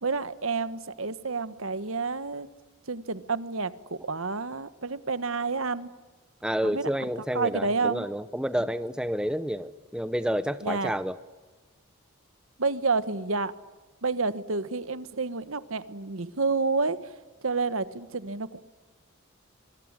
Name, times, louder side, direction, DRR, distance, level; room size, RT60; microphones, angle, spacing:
voice 1, 0.0-2.5 2.9-5.9 6.6-6.9 7.3-8.1 10.6-10.9 12.6-13.5 14.0-17.0 17.4-18.6, right 4 dB, 70° right, 14 dB, 1.4 m, -29 dB
voice 2, 6.4-11.2, equal, 5° right, 13 dB, 0.8 m, -29 dB
25.5 x 23.0 x 9.8 m, 1.2 s
head